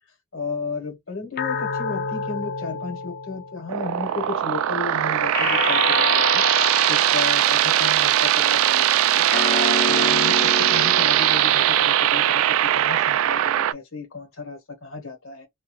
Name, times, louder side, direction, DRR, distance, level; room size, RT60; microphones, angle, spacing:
voice 1, 0.3-6.4 6.9-9.2 9.9-15.5, left 4 dB, 80° left, 1.4 m, -34 dB
sound 1, 1.4-4.0 5.3-7.9 9.3-11.9, left 5 dB, 45° left, 0.5 m, -29 dB
sound 2, 3.7-13.7, right 12 dB, 80° right, 0.3 m, -20 dB
2.6 x 2.4 x 3.1 m
head